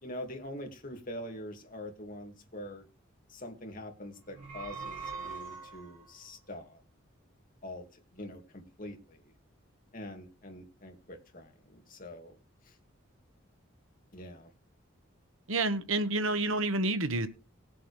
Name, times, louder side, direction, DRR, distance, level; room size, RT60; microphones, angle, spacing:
voice 1, 0.0-2.9 3.3-6.8 7.6-7.9 8.1-9.3 9.9-12.3 14.1-14.5, left 1 dB, 40° left, 3 dB, 2.3 m, -44 dB
sound 1, 4.2-6.1, right 5 dB, 40° right, 2.6 m, -42 dB
voice 2, 15.5-17.3, right 2 dB, 80° right, 10 dB, 1.2 m, -29 dB
19.0 x 7.8 x 3.3 m, 0.32 s
head